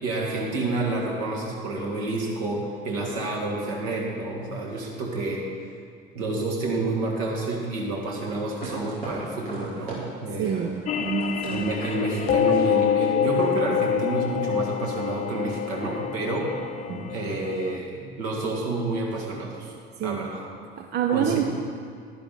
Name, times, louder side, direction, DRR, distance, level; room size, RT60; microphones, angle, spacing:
voice 1, 0.0-5.5 6.1-10.6 11.5-16.5 16.9-19.7 20.0-20.4 21.1-21.4, right 2 dB, 55° right, -1 dB, 2.2 m, -29 dB
sound 1, 8.2-10.0 10.4-13.5, right 2 dB, 85° right, 2.7 m, -39 dB
voice 2, 10.4-11.7 20.0-20.2 20.8-21.4, right 9 dB, 35° right, 4 dB, 0.6 m, -27 dB
sound 2, 10.9-17.8, left 9 dB, 25° left, 0.4 m, -26 dB
11.5 x 11.0 x 3.8 m, 2.2 s
figure-of-eight pair, 65°, 30 cm